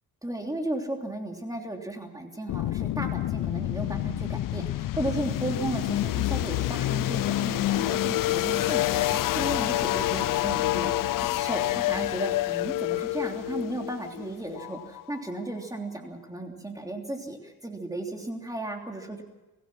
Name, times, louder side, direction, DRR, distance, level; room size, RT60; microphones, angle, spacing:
voice 1, 0.2-19.2, right 1 dB, 10° right, 2 dB, 3.2 m, -35 dB
sound 1, 2.5-15.3, left 15 dB, 60° left, 0.6 m, -28 dB
25.0 x 17.0 x 6.2 m, 1.1 s
cardioid pair, 125°, 37 cm